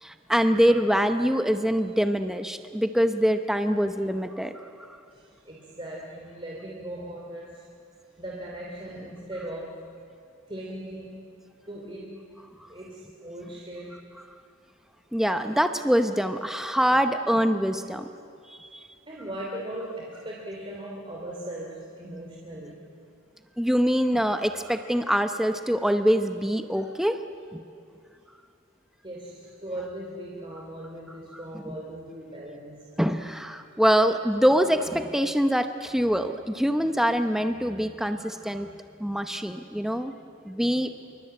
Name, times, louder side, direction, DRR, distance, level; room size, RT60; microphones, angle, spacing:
voice 1, 0.0-5.0 15.1-18.1 18.7-18.8 23.6-27.2 27.5-27.6 31.7-31.8 33.0-38.7 39.0-40.1 40.4-40.9, equal, ahead, 7 dB, 0.8 m, -24 dB
voice 2, 5.1-7.6 8.2-9.8 10.5-11.2 11.7-12.2 12.7-14.0 19.1-22.8 29.0-32.9, right 1 dB, 25° right, -3 dB, 2.8 m, -38 dB
26.5 x 23.5 x 8.8 m, 2.4 s
head